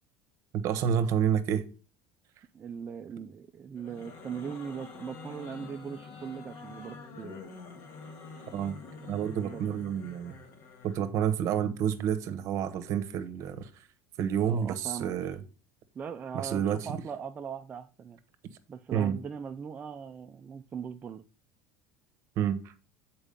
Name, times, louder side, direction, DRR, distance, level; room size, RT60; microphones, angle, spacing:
voice 1, 0.6-1.7 8.5-8.7 9.0-10.3 10.8-13.7 14.2-15.4 16.3-17.0 18.9-19.2 22.4-22.6, right 9 dB, 50° right, 0.9 m, -29 dB
voice 2, 2.5-7.4 9.5-9.6 14.5-15.1 15.9-18.2 18.7-21.2, right 7 dB, 25° right, 0.4 m, -40 dB
sound 1, 3.7-11.1, left 4 dB, 55° left, 1.4 m, -46 dB
7.2 x 4.5 x 5.1 m
cardioid pair, 140°, 7 cm